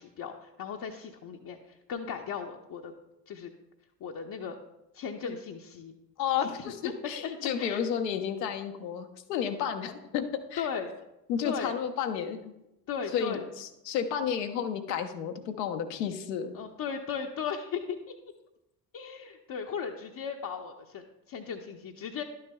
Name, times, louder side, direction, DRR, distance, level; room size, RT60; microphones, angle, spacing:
voice 1, 0.0-2.9 3.3-3.5 4.0-4.6 4.9-5.9 6.4-6.5 6.8-7.3 7.6-7.9 10.6-10.9 11.4-11.8 12.9-13.4 16.5-18.1 18.9-22.2, left 6 dB, 45° left, 2 dB, 0.7 m, -37 dB
voice 2, 6.2-10.7 11.3-12.5 13.1-16.5, left 8 dB, 75° left, 6 dB, 0.7 m, -32 dB
11.5 x 6.6 x 2.3 m, 0.90 s
figure-of-eight pair, 40°, 49 cm